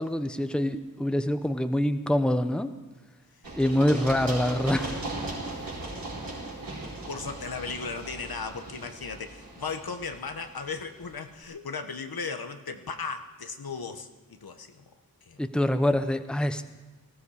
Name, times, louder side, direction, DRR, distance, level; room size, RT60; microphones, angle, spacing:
voice 1, 0.0-2.7 3.6-5.0 15.4-16.6, left 1 dB, ahead, 9 dB, 0.9 m, -25 dB
Run, 3.4-11.1, right 2 dB, 70° right, 4.9 m, -38 dB
voice 2, 7.1-14.9 15.3-15.4, left 4 dB, 80° left, 7 dB, 1.3 m, -36 dB
19.0 x 15.5 x 4.9 m, 1.2 s
wide cardioid pair, 65°, 36 cm